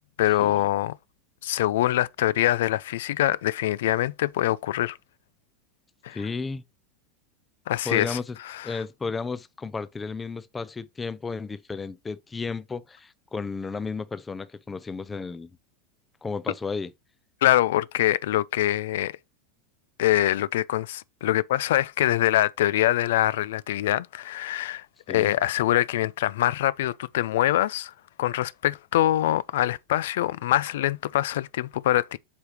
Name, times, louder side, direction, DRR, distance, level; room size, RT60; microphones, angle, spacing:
voice 1, 0.2-1.0 1.4-5.0 6.0-6.2 7.7-8.2 8.4-8.8 17.4-19.1 20.0-27.9 28.2-32.2, left 14 dB, 85° left, 0.3 m, -24 dB
voice 2, 6.1-6.6 7.9-8.4 8.6-15.5 16.2-16.9 25.1-25.3, left 4 dB, 10° left, 0.5 m, -33 dB
8.2 x 4.9 x 2.9 m
supercardioid pair, 155°, 0 cm